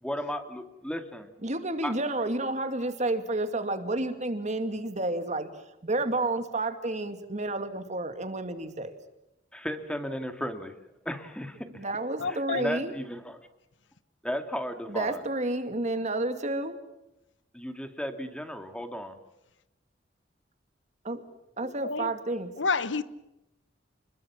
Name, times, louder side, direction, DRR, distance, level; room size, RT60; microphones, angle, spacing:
voice 1, 0.0-1.3 1.8-2.0 9.5-10.7 11.1-11.9 12.3-13.4 14.2-15.2 17.5-19.2, equal, 5° left, 2.4 m, -35 dB
voice 2, 1.4-5.5 5.8-9.0 11.7-12.9 14.9-16.8 21.0-21.2 21.6-22.5, right 2 dB, 40° right, 2.4 m, -30 dB
voice 3, 12.2-12.7 21.8-22.1 22.6-23.0, left 4 dB, 85° left, 1.1 m, -29 dB
27.5 x 21.0 x 7.4 m
head